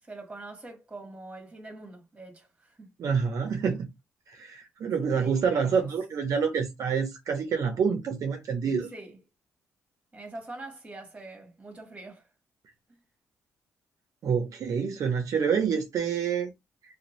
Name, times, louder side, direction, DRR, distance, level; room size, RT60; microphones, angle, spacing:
voice 1, 0.0-2.9 4.8-5.7 8.9-9.2 10.1-12.3 12.9-13.0, right 2 dB, 20° right, 1.3 m, -44 dB
voice 2, 3.0-3.9 4.3-8.9 14.2-16.5, right 6 dB, 65° right, 0.6 m, -27 dB
2.6 x 2.1 x 3.0 m
cardioid pair, 90°, 6 cm